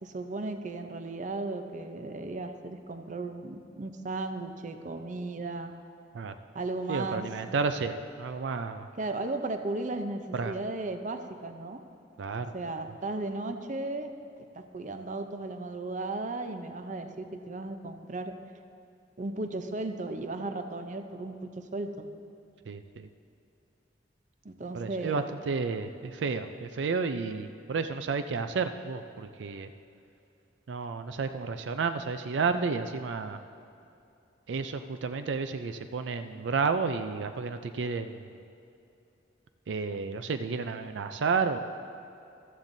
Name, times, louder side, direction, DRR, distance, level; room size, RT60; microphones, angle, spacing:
voice 1, 0.0-5.7 6.5-7.2 9.0-11.8 12.5-14.1 14.4-18.3 19.2-22.1 24.4-25.2, right 2 dB, 45° right, 7 dB, 0.6 m, -35 dB
voice 2, 6.9-8.9 10.3-10.6 12.2-12.5 22.6-23.1 24.7-29.7 30.7-33.4 34.5-38.3 39.7-41.6, right 4 dB, 90° right, 9 dB, 0.4 m, -31 dB
14.5 x 13.0 x 2.7 m, 2.6 s
head